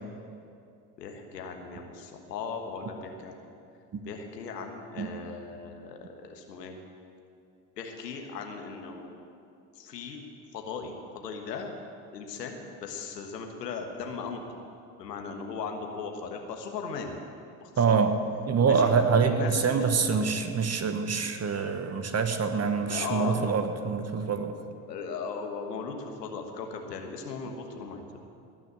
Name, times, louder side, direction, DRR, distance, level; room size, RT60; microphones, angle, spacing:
voice 1, 1.0-3.4 4.0-6.8 7.8-9.2 9.7-10.2 10.5-11.7 12.1-14.6 15.0-17.1 17.6-18.0 18.7-18.9 19.2-20.2 22.8-23.9 24.9-28.3, left 5 dB, 90° left, 3 dB, 1.5 m, -38 dB
voice 2, 17.8-18.1 18.5-24.5, right 5 dB, 30° right, 7 dB, 1.4 m, -25 dB
19.0 x 6.4 x 8.6 m, 2.5 s
hypercardioid pair, 65°, 47 cm